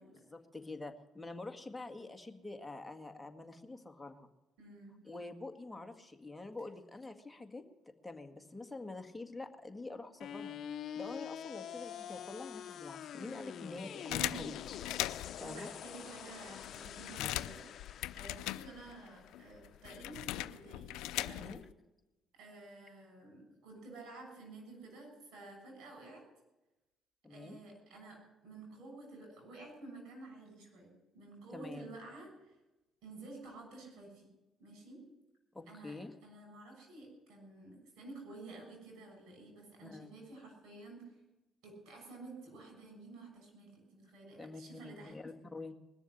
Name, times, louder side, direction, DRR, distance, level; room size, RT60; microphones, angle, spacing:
voice 1, 0.1-4.3 5.0-10.6 10.9-14.5 15.3-15.7 17.2-17.4 21.4-21.6 27.2-27.6 31.5-31.9 35.5-36.1 39.8-40.1 44.4-45.7, left 2 dB, 10° left, 4 dB, 1.8 m, -46 dB
voice 2, 4.6-5.0 14.1-14.5 15.1-21.5 22.3-26.2 27.3-32.5 33.0-34.3 34.6-35.0 35.7-41.1 41.6-45.2, right 2 dB, 80° right, 1 dB, 6.9 m, -51 dB
sound 1, 10.2-20.2, left 9 dB, 65° left, 0.8 m, -46 dB
sound 2, 14.1-15.5 16.1-16.2 16.4-19.1 19.3-21.7, left 16 dB, 90° left, 0.4 m, -39 dB
20.5 x 7.0 x 10.0 m, 1.0 s
cardioid pair, 80°, 0 cm